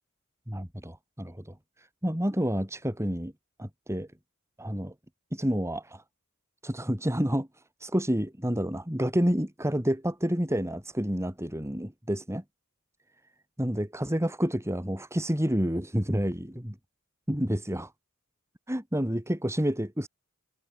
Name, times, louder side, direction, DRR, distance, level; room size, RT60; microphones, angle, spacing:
voice 1, 0.5-3.3 3.6-4.1 4.6-4.9 5.3-6.0 6.6-7.5 7.8-12.4 13.6-16.8 17.3-17.9 18.7-20.1, equal, 15° right, 4.2 m, -29 dB
head